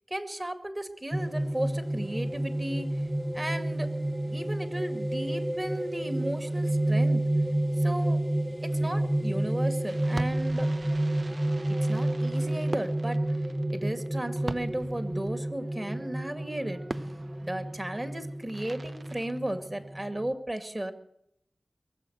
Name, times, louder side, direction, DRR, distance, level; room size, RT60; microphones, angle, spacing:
voice 1, 0.1-2.9 3.3-3.9 4.3-7.3 7.8-8.2 8.7-10.7 11.9-13.2 13.7-16.8 17.4-20.9, right 1 dB, 30° right, 8 dB, 2.1 m, -35 dB
sound 1, 1.1-20.3, right 1 dB, 10° right, 0.7 m, -30 dB
Fireworks, 9.9-20.1, right 2 dB, 55° right, 0.6 m, -43 dB
22.5 x 7.6 x 8.0 m, 0.74 s
cardioid pair, 40°, 0 cm